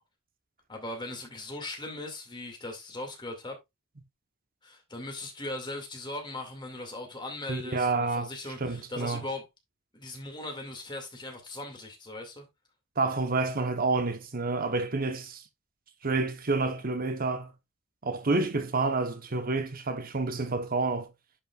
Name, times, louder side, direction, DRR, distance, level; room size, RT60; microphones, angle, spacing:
voice 1, 0.7-3.6 4.6-9.4 9.9-12.5, left 2 dB, 20° left, 2.3 m, -39 dB
voice 2, 7.5-8.3 8.6-9.2 13.0-15.4 16.0-17.5 18.0-21.1, right 3 dB, 45° right, 1.0 m, -29 dB
10.5 x 5.3 x 2.4 m
head